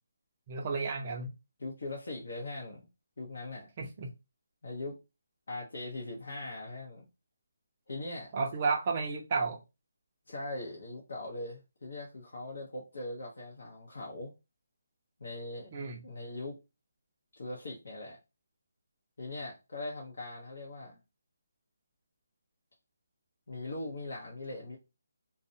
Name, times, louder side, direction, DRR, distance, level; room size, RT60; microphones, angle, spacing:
voice 1, 0.5-1.3 3.8-4.1 8.3-9.6 15.7-16.0, right 4 dB, 20° right, 0.4 m, -32 dB
voice 2, 1.6-2.9 3.2-3.7 4.6-4.9 5.5-7.1 7.9-8.3 10.3-14.3 15.2-15.7 16.0-16.6 17.4-18.2 19.2-21.0 23.5-24.8, left 2 dB, 60° left, 0.8 m, -40 dB
2.4 x 2.0 x 2.7 m
hypercardioid pair, 180°, 0 cm